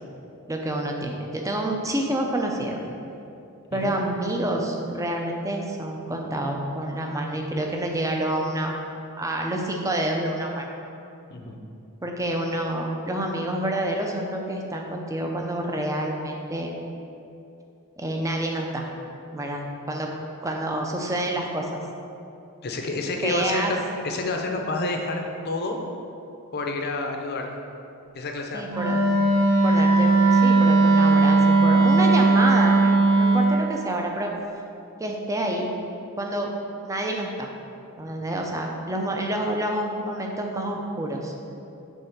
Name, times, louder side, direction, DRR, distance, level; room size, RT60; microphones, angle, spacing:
voice 1, 0.5-2.8 3.7-8.7 9.2-10.7 12.0-16.7 18.0-18.9 19.3-20.1 20.4-21.8 23.2-23.7 28.5-29.1 29.6-34.3 35.0-35.7 36.2-36.5 36.8-37.5 38.0-41.3, right 1 dB, 15° right, 1 dB, 0.5 m, -28 dB
voice 2, 22.6-23.8 24.0-25.8 26.5-27.5 28.1-28.7, left 2 dB, 45° left, 2 dB, 0.6 m, -29 dB
Wind instrument woodwind instrument, 28.7-33.6, right 3 dB, 80° right, 0.9 m, -18 dB
5.4 x 3.8 x 5.9 m, 2.7 s
head